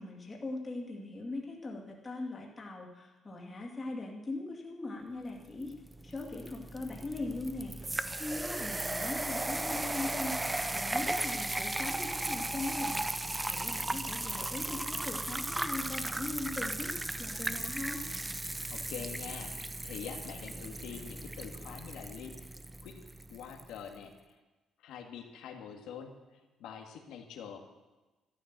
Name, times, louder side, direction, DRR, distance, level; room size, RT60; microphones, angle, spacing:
voice 1, 0.0-5.7 6.0-16.9 17.2-18.0, left 2 dB, 15° left, -1 dB, 2.3 m, -40 dB
sound 1, 5.7-23.7, right 2 dB, 10° right, 0.5 m, -36 dB
voice 2, 18.7-22.4 22.8-23.0 23.3-24.4 24.8-27.6, left 7 dB, 85° left, 3 dB, 2.0 m, -45 dB
13.0 x 12.0 x 7.5 m, 1.2 s
cardioid pair, 175°, 0 cm